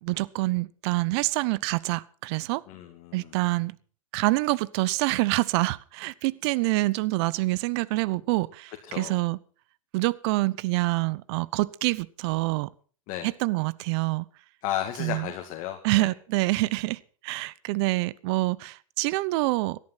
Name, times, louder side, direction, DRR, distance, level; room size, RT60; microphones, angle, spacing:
voice 1, 0.0-2.6 3.1-3.7 4.1-9.4 9.9-12.7 13.2-14.3 15.0-15.3 15.8-19.8, right 21 dB, 50° right, 0.8 m, -26 dB
voice 2, 2.7-3.3 8.9-9.2 13.1-13.3 14.6-16.1, left 11 dB, 45° left, 2.2 m, -34 dB
17.0 x 11.5 x 5.8 m
hypercardioid pair, 115°, 17 cm